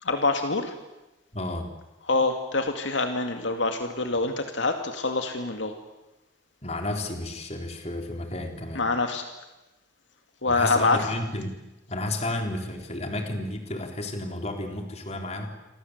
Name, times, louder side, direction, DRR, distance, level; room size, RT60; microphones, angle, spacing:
voice 1, 0.0-0.7 2.1-5.7 8.7-9.3 10.4-11.0, left 3 dB, 70° left, 6 dB, 2.4 m, -25 dB
voice 2, 1.3-1.7 6.6-8.9 10.4-11.6 11.9-15.5, left 1 dB, 35° left, 4 dB, 3.9 m, -32 dB
28.5 x 25.5 x 8.2 m, 0.99 s
head